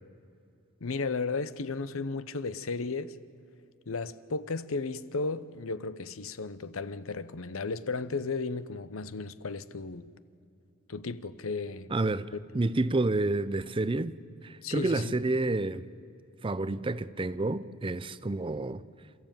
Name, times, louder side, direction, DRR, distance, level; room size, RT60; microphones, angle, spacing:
voice 1, 0.8-3.2 3.9-10.1 10.9-11.9 14.6-15.1, left 4 dB, 70° left, 0.8 m, -34 dB
voice 2, 11.9-12.3 12.5-14.1 14.4-15.8 16.4-18.8, right 2 dB, 25° right, 0.5 m, -29 dB
28.0 x 14.5 x 9.0 m
head